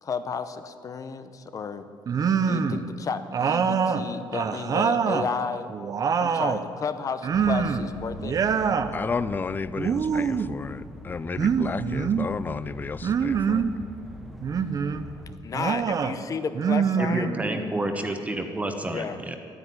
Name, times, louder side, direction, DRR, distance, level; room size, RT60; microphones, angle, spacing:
voice 1, 0.0-1.9 2.4-5.7 6.2-8.4 15.4-17.3 18.9-19.2, left 5 dB, 40° left, 0.9 m, -32 dB
sound 1, 2.1-2.9 3.3-5.3 5.7-6.7 7.2-7.9 8.2-8.9 9.8-10.5 11.4-12.3 13.0-13.7 14.4-15.0 15.5-16.2 16.5-17.7, right 6 dB, 40° right, 0.7 m, -25 dB
sound 2, 7.3-15.4, left 1 dB, ahead, 0.8 m, -42 dB
voice 2, 8.9-13.6, left 5 dB, 20° left, 0.3 m, -32 dB
voice 3, 17.0-19.4, right 1 dB, 15° right, 1.2 m, -29 dB
12.0 x 9.7 x 9.4 m
cardioid pair, 130°, 9 cm